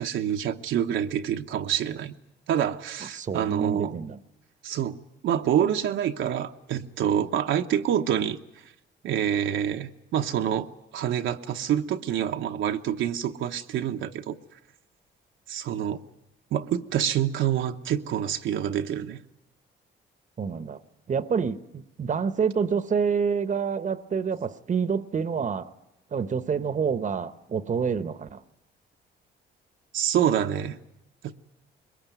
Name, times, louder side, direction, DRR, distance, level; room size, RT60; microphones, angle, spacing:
voice 1, 0.0-2.2 2.5-4.0 4.6-8.4 9.0-10.7 10.9-14.4 15.5-16.0 16.5-19.2 29.9-30.8 31.2-31.3, right 9 dB, 75° right, 5 dB, 1.0 m, -27 dB
voice 2, 3.1-4.2 20.4-20.8 21.1-25.7 26.1-28.4, right 6 dB, 40° right, 13 dB, 1.0 m, -27 dB
22.0 x 20.5 x 9.2 m, 0.90 s
cardioid pair, 90°, 20 cm